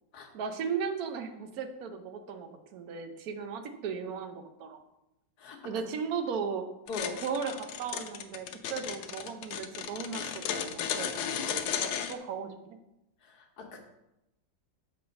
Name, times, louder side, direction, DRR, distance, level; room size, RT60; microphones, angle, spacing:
voice 1, 0.3-4.8 5.6-6.6 7.2-12.8, right 6 dB, 65° right, 8 dB, 1.0 m, -36 dB
voice 2, 5.4-5.8 6.9-7.2 11.9-12.1 13.2-13.8, left 4 dB, 60° left, 3 dB, 1.4 m, -41 dB
sound 1, 6.9-12.2, left 8 dB, 80° left, 1.3 m, -34 dB
6.7 x 4.2 x 5.2 m, 0.89 s
omnidirectional pair, 2.0 m